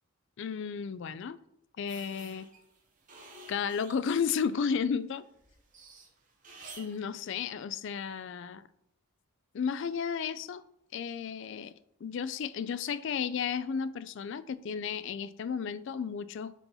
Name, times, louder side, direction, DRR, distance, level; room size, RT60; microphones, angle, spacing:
voice 1, 0.4-1.4 1.8-2.5 3.5-5.2 6.8-8.6 9.5-10.6 10.9-11.7 12.0-16.5, left 6 dB, 55° left, 15 dB, 0.3 m, -33 dB
sound 1, 1.9-4.8 5.2-7.0, right 3 dB, 35° right, 1.0 m, -51 dB
4.5 x 4.1 x 5.6 m, 0.78 s
head